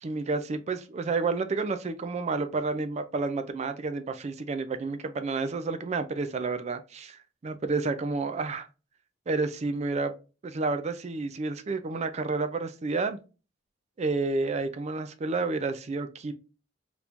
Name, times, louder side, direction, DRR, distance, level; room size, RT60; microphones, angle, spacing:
voice 1, 0.0-8.7 9.3-10.1 10.4-13.2 14.0-16.3, right 3 dB, 35° right, 0.4 m, -30 dB
3.4 x 3.0 x 2.5 m
head